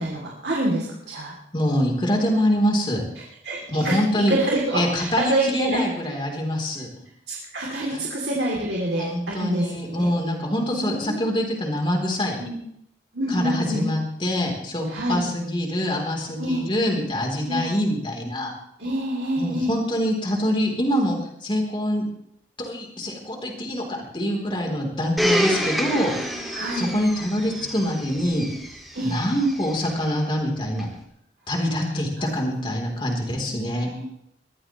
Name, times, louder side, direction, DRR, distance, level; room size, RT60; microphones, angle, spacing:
voice 1, 0.0-1.3 3.4-5.8 7.3-10.1 10.7-11.3 12.4-12.6 13.1-13.9 14.9-15.2 16.4-16.6 17.4-17.7 18.8-19.7 26.5-26.9 28.9-29.1 32.2-32.3 33.3-34.0, right 1 dB, 70° right, -4 dB, 3.0 m, -27 dB
voice 2, 1.5-3.0 3.7-4.4 4.7-6.9 7.9-8.0 9.0-12.5 13.3-18.5 19.4-22.0 22.6-26.1 26.4-28.5 29.0-30.9 31.5-33.9, equal, 25° left, 0 dB, 3.5 m, -25 dB
Domestic sounds home sounds, 25.2-30.0 30.8-30.9, equal, ahead, 2.1 m, -28 dB
22.5 x 14.5 x 3.1 m, 0.74 s
head